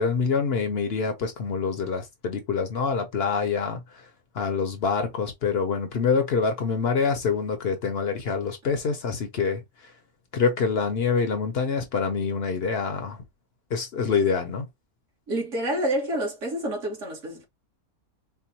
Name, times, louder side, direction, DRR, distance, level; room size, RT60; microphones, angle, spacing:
voice 1, 0.0-4.1 4.3-9.9 10.3-13.2 13.7-14.7, left 5 dB, 55° left, 0.8 m, -26 dB
voice 2, 15.3-17.4, right 1 dB, 55° right, 1.6 m, -28 dB
4.5 x 2.1 x 2.7 m
omnidirectional pair, 1.5 m